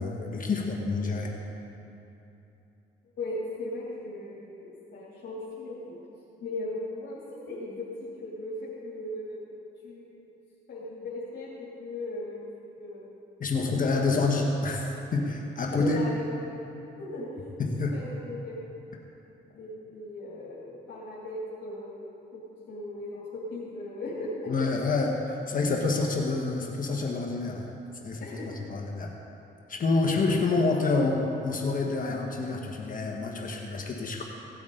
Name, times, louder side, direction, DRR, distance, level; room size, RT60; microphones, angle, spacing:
voice 1, 0.0-1.3 13.4-16.0 17.6-17.9 24.5-27.7 28.0-28.3 28.7-29.1 29.7-34.2, left 3 dB, 45° left, 0 dB, 1.3 m, -27 dB
voice 2, 3.2-6.0 6.4-7.2 7.5-7.9 8.2-9.4 9.8-10.2 10.7-13.2 13.8-14.2 15.7-16.4 17.0-17.3 17.9-18.8 19.4-22.1 22.7-24.5 28.2-28.6 29.9-30.1, left 2 dB, 65° left, -8 dB, 2.9 m, -38 dB
17.5 x 8.7 x 3.9 m, 2.9 s
cardioid pair, 90°, 20 cm